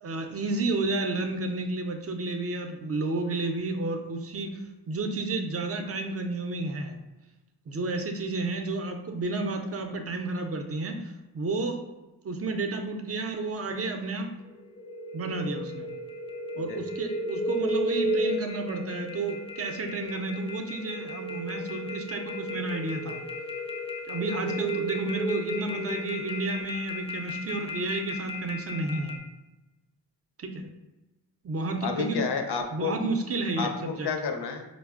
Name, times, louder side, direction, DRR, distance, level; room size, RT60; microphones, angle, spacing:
voice 1, 0.0-7.0 7.7-11.8 12.2-14.3 15.1-15.9 16.6-23.2 24.1-29.2 30.4-30.7 31.4-32.2 32.7-34.1, right 2 dB, 35° right, 5 dB, 0.5 m, -31 dB
sound 1, 14.4-29.2, equal, 15° left, 0.5 m, -34 dB
voice 2, 31.8-32.9 33.6-34.7, left 5 dB, 65° left, 5 dB, 0.6 m, -30 dB
4.8 x 2.1 x 2.3 m, 1.0 s
cardioid pair, 50°, 44 cm